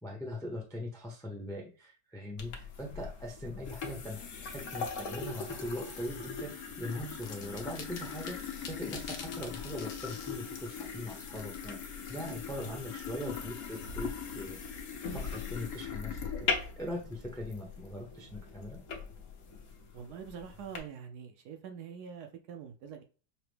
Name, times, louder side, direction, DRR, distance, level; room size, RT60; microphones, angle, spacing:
voice 1, 0.0-8.3 8.7-14.8 15.1-18.8, left 1 dB, 5° left, 0.5 m, -41 dB
sound 1, 2.4-20.8, left 6 dB, 55° left, 1.0 m, -40 dB
sound 2, 6.9-13.7, left 5 dB, 75° left, 1.4 m, -49 dB
voice 2, 19.9-23.0, right 7 dB, 70° right, 1.1 m, -45 dB
5.7 x 2.1 x 3.2 m
omnidirectional pair, 1.9 m